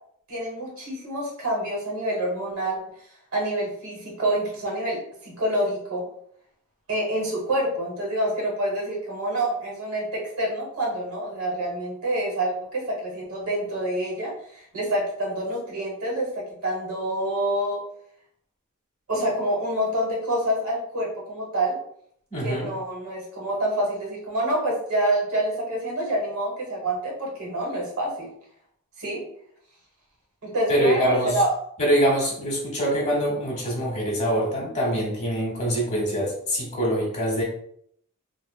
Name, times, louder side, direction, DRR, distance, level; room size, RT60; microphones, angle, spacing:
voice 1, 0.3-2.8 3.3-6.0 6.9-17.8 19.1-21.8 22.4-28.3 29.0-29.2 30.4-31.5, right 1 dB, 70° right, -2 dB, 0.9 m, -27 dB
voice 2, 22.3-22.7 30.7-31.3 31.8-37.4, equal, 35° left, -3 dB, 1.0 m, -24 dB
3.5 x 2.0 x 2.2 m, 0.68 s
head